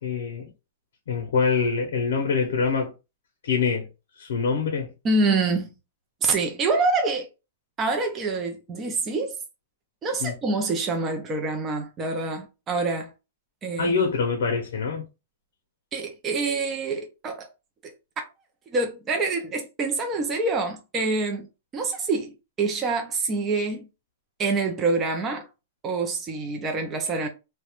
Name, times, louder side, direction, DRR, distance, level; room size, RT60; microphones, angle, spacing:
voice 1, 0.0-0.5 1.1-2.9 3.4-3.9 4.2-4.9 10.2-10.3 13.8-15.1, left 5 dB, 75° left, 0.6 m, -25 dB
voice 2, 5.0-5.7 6.2-7.3 7.8-9.4 10.0-13.1 13.6-13.9 15.9-17.5 17.8-17.9 18.7-21.5 21.7-23.9 24.4-25.5 25.8-27.3, right 3 dB, 20° right, 0.4 m, -26 dB
2.3 x 2.1 x 2.9 m
supercardioid pair, 165°, 0 cm